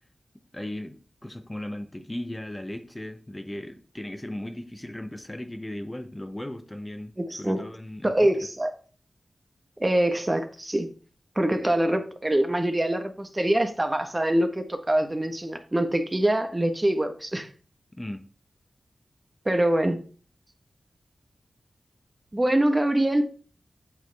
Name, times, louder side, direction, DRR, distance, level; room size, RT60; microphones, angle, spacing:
voice 1, 0.5-8.3 18.0-18.2, left 1 dB, 20° left, 0.9 m, -37 dB
voice 2, 7.2-7.6 8.0-8.7 9.8-10.9 11.3-17.5 19.4-20.0 22.3-23.3, right 1 dB, 25° right, 1.2 m, -24 dB
8.1 x 6.6 x 3.4 m
cardioid pair, 50°, 0 cm